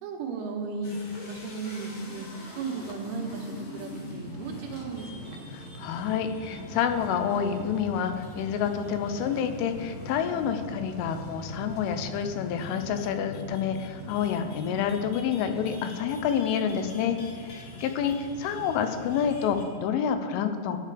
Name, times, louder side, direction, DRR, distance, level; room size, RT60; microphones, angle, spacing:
voice 1, 0.0-1.0 1.3-2.3 2.6-5.5, right 4 dB, 85° right, 1 dB, 3.8 m, -35 dB
sound 1, 0.8-19.8, equal, 55° left, 2.0 m, -42 dB
voice 2, 5.5-20.8, left 7 dB, 85° left, 8 dB, 3.2 m, -28 dB
15.0 x 9.7 x 3.4 m, 2.2 s
omnidirectional pair, 5.5 m